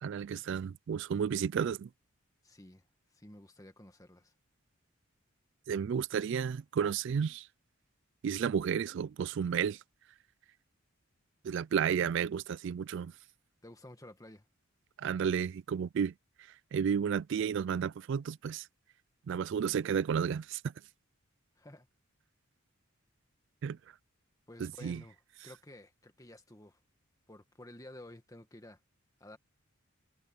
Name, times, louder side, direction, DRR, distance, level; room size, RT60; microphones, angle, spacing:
voice 1, 0.0-1.9 5.7-7.5 8.2-9.8 11.4-13.1 15.0-16.1 16.7-18.7 19.3-20.6 23.6-23.8 24.6-25.0, right 7 dB, 60° right, 0.3 m, -32 dB
voice 2, 2.4-2.8 3.1-4.3 13.6-14.5 21.6-21.9 24.5-26.8 27.3-28.8 29.2-29.4, left 1 dB, 15° left, 1.7 m, -52 dB
head